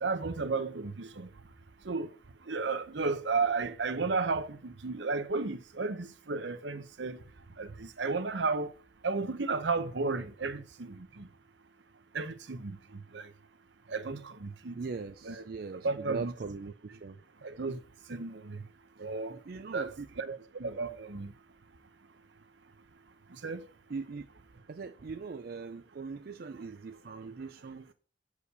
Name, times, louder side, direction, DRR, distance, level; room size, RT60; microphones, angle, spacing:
voice 1, 0.0-1.3 1.8-2.1 2.5-7.2 7.6-8.7 9.0-11.3 12.1-13.3 13.9-14.8 15.2-15.4 15.7-16.3 17.4-17.8 18.1-18.6 19.0-19.4 19.7-21.3 23.3-23.7, right 4 dB, 70° right, 0.8 m, -33 dB
voice 2, 14.7-17.2 19.3-20.1 23.9-24.3 24.7-27.9, right 4 dB, 50° right, 0.4 m, -40 dB
8.3 x 5.0 x 6.8 m
head